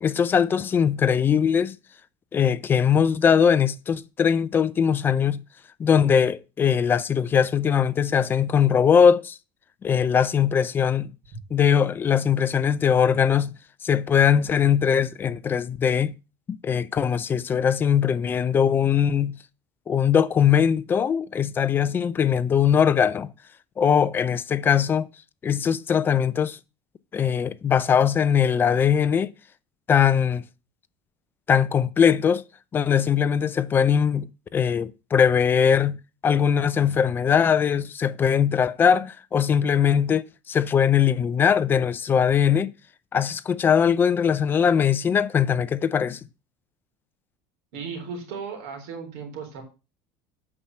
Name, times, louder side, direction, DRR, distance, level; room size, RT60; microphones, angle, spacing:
voice 1, 0.0-1.8 2.3-5.4 5.8-9.4 9.8-11.1 11.5-13.5 13.8-16.1 16.5-19.4 19.9-23.3 23.8-25.1 25.4-26.6 27.1-29.3 29.9-30.4 31.5-32.4 32.7-36.0 36.2-42.7 43.1-46.2, left 7 dB, 20° left, 0.4 m, -21 dB
voice 2, 47.7-49.6, right 5 dB, 65° right, 4.0 m, -35 dB
8.7 x 5.7 x 6.0 m
cardioid pair, 170°, 11 cm